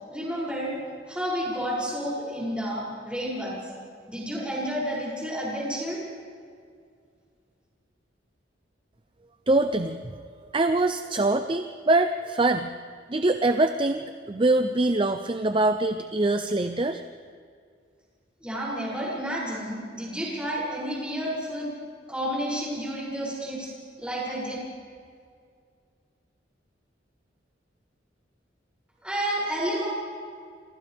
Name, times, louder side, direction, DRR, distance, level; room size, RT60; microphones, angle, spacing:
voice 1, 0.1-0.7 1.1-3.6 4.1-6.0 18.4-21.7 22.1-23.7 24.0-24.6 29.0-29.9, equal, 5° right, -6 dB, 7.1 m, -30 dB
voice 2, 9.5-10.2 10.5-12.7 13.1-17.0, right 2 dB, 25° right, 8 dB, 0.6 m, -24 dB
29.0 x 25.5 x 3.6 m, 2.2 s
head